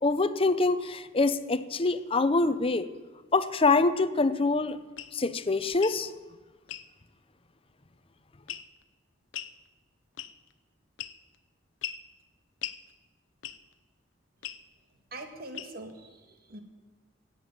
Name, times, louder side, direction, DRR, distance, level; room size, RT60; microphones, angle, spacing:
voice 1, 0.0-2.9 3.3-4.8 5.1-6.1, left 3 dB, 30° left, 13 dB, 0.7 m, -25 dB
sound 1, 5.0-5.1 5.7-6.0 6.7-6.9 8.5-8.8 9.3-9.6 10.2-10.5 11.0-11.4 11.8-12.0 12.6-12.8 13.4-13.7 14.4-14.6 15.5-15.9, left 11 dB, 90° left, 0.6 m, -39 dB
voice 2, 15.1-16.6, right 2 dB, 55° right, 6 dB, 1.9 m, -43 dB
16.5 x 7.5 x 9.3 m, 1.3 s
head